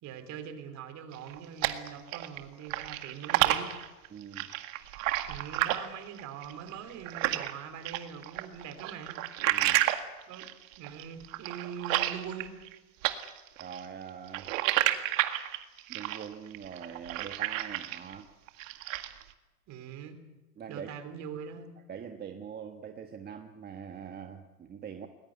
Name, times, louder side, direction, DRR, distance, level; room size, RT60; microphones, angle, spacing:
voice 1, 0.0-3.8 5.3-9.2 10.3-10.5 10.8-12.6 19.7-20.2 20.7-21.7, right 7 dB, 35° right, 10 dB, 3.4 m, -42 dB
sound 1, 1.1-2.4 2.7-7.5 7.8-12.7 13.0-18.1 18.5-19.2, right 15 dB, 60° right, 2.0 m, -31 dB
voice 2, 4.1-4.5 9.5-9.8 13.6-14.5 15.9-18.3 20.6-20.9 21.9-25.1, right 7 dB, 20° right, 6 dB, 1.4 m, -43 dB
21.0 x 20.5 x 9.4 m, 1.1 s
hypercardioid pair, 120°, 45 cm